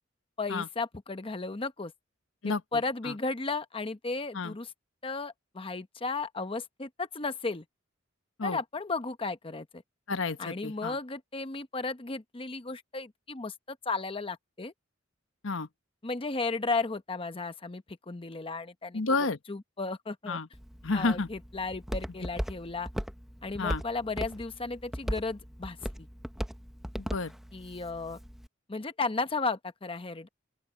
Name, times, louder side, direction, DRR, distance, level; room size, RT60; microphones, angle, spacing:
voice 1, 0.4-1.9 2.5-4.7 5.0-7.6 8.4-9.8 10.4-14.7 16.0-19.0 19.5-20.4 20.9-22.9 23.4-26.1 27.5-28.2 28.7-30.3, left 3 dB, 30° left, 0.9 m, -34 dB
voice 2, 10.1-11.0 15.4-15.7 18.9-19.4 20.3-20.5 20.8-21.3 23.6-23.8 27.0-27.3, left 3 dB, 80° left, 1.1 m, -30 dB
Walk footsteps, 20.5-28.5, equal, ahead, 0.7 m, -38 dB
open air
head